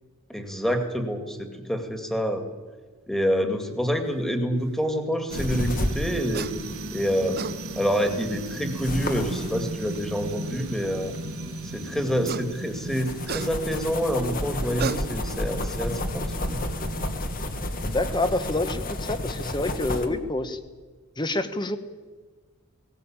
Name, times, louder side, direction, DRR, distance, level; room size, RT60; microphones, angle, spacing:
voice 1, 0.3-2.4 3.1-6.5 6.9-7.4 7.8-11.1 11.7-16.6, equal, ahead, 6 dB, 2.2 m, -27 dB
sound 1, 5.3-20.1, left 1 dB, 40° left, 2.1 m, -33 dB
sound 2, 5.3-18.6, right 2 dB, 75° right, 1.4 m, -37 dB
sound 3, 6.3-6.6 7.1-7.6 9.0-9.1 12.0-12.5 12.9-13.9 14.6-15.4, right 6 dB, 45° right, 0.7 m, -33 dB
voice 2, 17.8-20.6 21.2-21.8, left 2 dB, 20° left, 10 dB, 1.2 m, -27 dB
18.0 x 18.0 x 8.9 m, 1.4 s
head